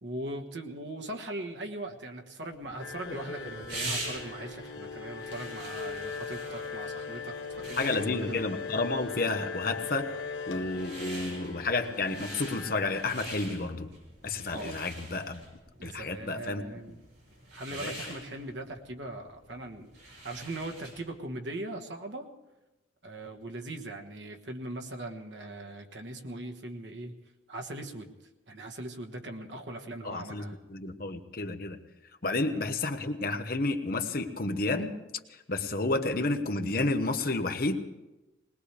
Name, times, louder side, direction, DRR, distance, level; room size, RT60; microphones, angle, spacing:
voice 1, 0.0-8.5 14.5-14.7 15.8-17.0 17.5-19.9 20.2-22.3 23.0-27.1 27.5-28.1 28.5-30.6 32.4-32.6, right 1 dB, 70° right, 4 dB, 1.4 m, -40 dB
sound 1, 2.6-21.2, right 2 dB, 90° right, 7.0 m, -45 dB
sound 2, 2.8-13.0, left 5 dB, 80° left, 1.1 m, -39 dB
voice 2, 7.8-10.1 10.5-13.9 14.2-15.4 15.8-16.6 17.7-18.0 30.0-31.8 32.2-34.9 35.5-37.8, left 2 dB, 50° left, 7 dB, 1.0 m, -31 dB
20.5 x 20.0 x 3.4 m, 1.0 s
head